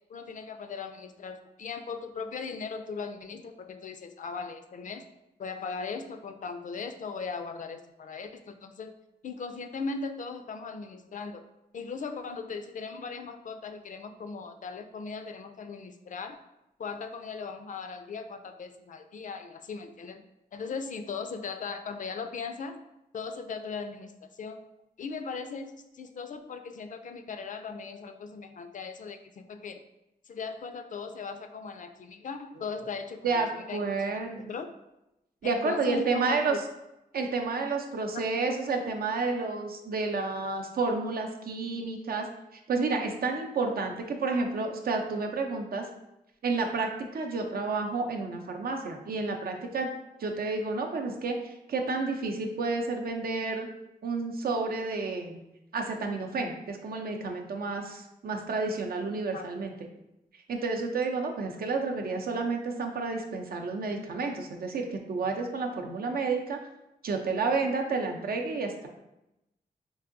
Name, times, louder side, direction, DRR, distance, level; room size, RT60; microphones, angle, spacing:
voice 1, 0.1-5.0 5.4-8.9 9.2-11.4 11.7-16.4 16.8-20.2 20.5-22.8 23.1-24.6 25.0-29.8 30.3-34.2 34.5-34.7 35.4-36.6 59.3-59.5, left 5 dB, 55° left, 8 dB, 0.4 m, -38 dB
voice 2, 33.2-34.5 35.4-36.6 37.1-42.3 42.7-45.9 46.4-49.9 50.2-53.7 54.0-55.4 55.7-59.7 60.5-66.6 67.0-68.9, right 4 dB, 70° right, 3 dB, 0.5 m, -30 dB
4.6 x 2.6 x 2.5 m, 0.91 s
wide cardioid pair, 85°, 16 cm